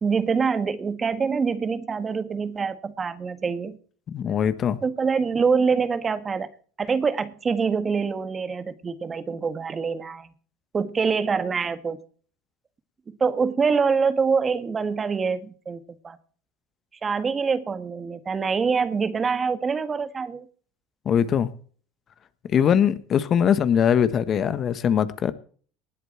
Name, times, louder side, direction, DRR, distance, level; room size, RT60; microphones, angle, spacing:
voice 1, 0.0-3.8 4.8-6.5 6.8-10.3 10.7-12.0 13.1-16.2 17.0-20.5, right 5 dB, 30° right, 11 dB, 1.8 m, -25 dB
voice 2, 4.1-4.8 21.0-21.5 22.4-25.3, left 8 dB, 45° left, 14 dB, 1.4 m, -21 dB
19.5 x 8.1 x 4.5 m, 0.44 s
hypercardioid pair, 75°, 0 cm